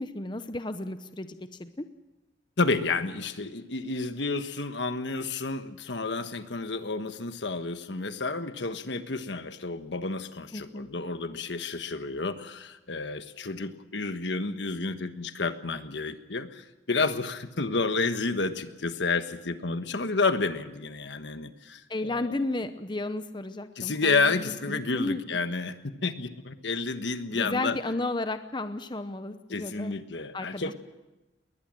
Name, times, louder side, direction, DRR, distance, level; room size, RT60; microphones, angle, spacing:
voice 1, 0.0-1.9 10.5-10.9 21.9-25.2 27.3-29.9 30.3-30.7, left 2 dB, 25° left, 10 dB, 0.8 m, -33 dB
voice 2, 2.6-22.3 23.8-27.8 29.5-30.7, left 3 dB, 75° left, 9 dB, 1.4 m, -30 dB
21.0 x 19.5 x 7.7 m, 1.1 s
head